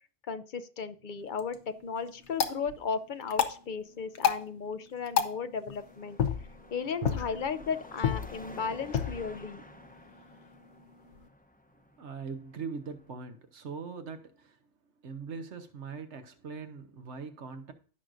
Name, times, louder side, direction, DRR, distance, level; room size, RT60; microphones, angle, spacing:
voice 1, 0.3-1.6 1.8-6.2 6.7-9.6, left 5 dB, 55° left, 0.7 m, -35 dB
sound 1, 1.0-2.3 7.0-8.9, right 8 dB, 55° right, 0.7 m, -49 dB
sound 2, 1.2-11.3, left 8 dB, 80° left, 1.1 m, -34 dB
Car passing by / Traffic noise roadway noise / Engine, 5.8-13.1, left 1 dB, 10° left, 0.7 m, -51 dB
voice 2, 12.0-14.6 15.0-17.7, right 5 dB, 85° right, 1.3 m, -41 dB
15.5 x 6.2 x 2.6 m
omnidirectional pair, 1.2 m